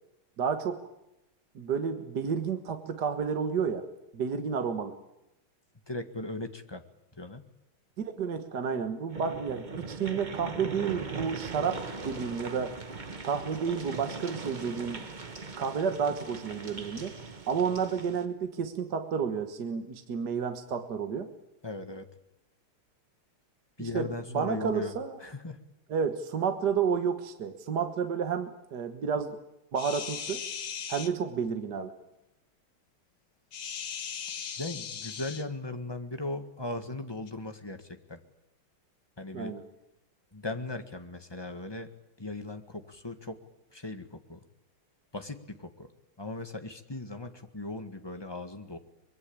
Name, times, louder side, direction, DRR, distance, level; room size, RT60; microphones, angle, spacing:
voice 1, 0.4-0.8 1.6-3.8 4.1-5.0 8.0-12.7 13.2-15.1 15.6-17.1 17.5-21.3 23.8-25.2 25.9-29.4 29.7-30.4 30.9-31.9 39.3-39.6, right 6 dB, 55° right, 7 dB, 1.9 m, -31 dB
voice 2, 5.9-6.8 7.1-7.4 21.6-22.1 23.8-24.9 25.2-25.6 34.6-38.2 39.2-39.5 40.3-41.9 42.2-43.4 43.7-44.4 45.1-45.9 46.2-48.8, left 2 dB, 15° left, 7 dB, 1.5 m, -38 dB
sound 1, 9.1-18.2, right 4 dB, 25° right, 1.1 m, -40 dB
sound 2, 29.8-31.1 33.5-35.5 37.3-37.4, left 7 dB, 60° left, 1.9 m, -38 dB
24.5 x 22.0 x 8.7 m, 0.88 s
omnidirectional pair, 2.3 m